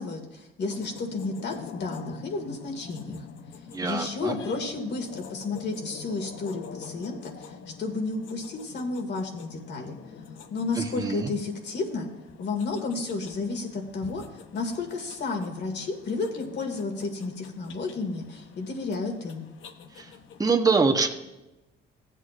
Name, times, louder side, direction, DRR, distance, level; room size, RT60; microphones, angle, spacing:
voice 1, 0.0-3.2 3.8-7.5 7.8-10.0 10.5-12.1 12.4-14.2 14.5-19.4, left 3 dB, 60° left, 3 dB, 2.2 m, -32 dB
sound 1, 0.7-20.6, left 6 dB, 75° left, 0.8 m, -45 dB
voice 2, 3.7-4.3 10.7-11.3 19.9-20.1 20.4-21.1, right 4 dB, 20° right, 4 dB, 1.2 m, -24 dB
15.5 x 8.2 x 2.6 m, 1.0 s
cardioid pair, 90°, 20 cm